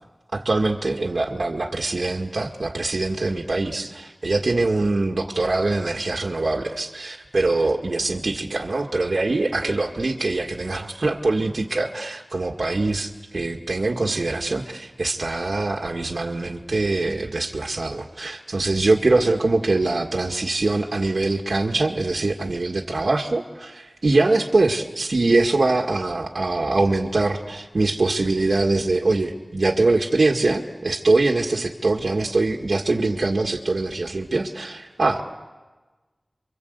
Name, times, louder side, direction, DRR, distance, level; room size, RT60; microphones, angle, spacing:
voice 1, 0.3-35.2, right 2 dB, 75° right, 1 dB, 1.9 m, -23 dB
30.0 x 24.5 x 8.2 m, 1.2 s
wide cardioid pair, 55°, 0 cm